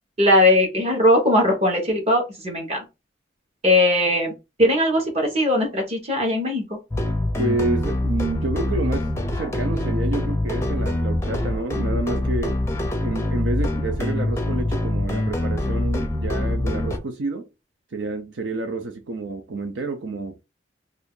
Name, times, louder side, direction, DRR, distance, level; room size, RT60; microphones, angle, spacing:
voice 1, 0.2-2.8 3.6-4.3 4.6-6.6, left 1 dB, 35° right, 1.1 m, -19 dB
sound 1, 6.9-17.0, left 1 dB, 15° left, 0.5 m, -24 dB
voice 2, 7.4-12.6 13.0-17.5 17.9-20.4, right 2 dB, 80° right, 0.6 m, -29 dB
2.6 x 2.4 x 3.6 m
head